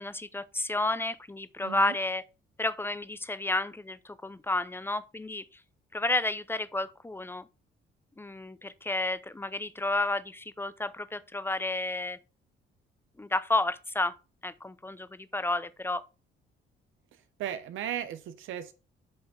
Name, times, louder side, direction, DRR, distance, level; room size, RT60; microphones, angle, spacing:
voice 1, 0.0-2.2 2.6-5.5 5.9-7.5 8.2-12.2 13.2-14.1 14.4-16.0, left 2 dB, 10° left, 0.5 m, -31 dB
voice 2, 1.6-2.0 17.4-18.7, right 10 dB, 80° right, 0.8 m, -36 dB
7.8 x 3.5 x 5.7 m
cardioid pair, 90°, 20 cm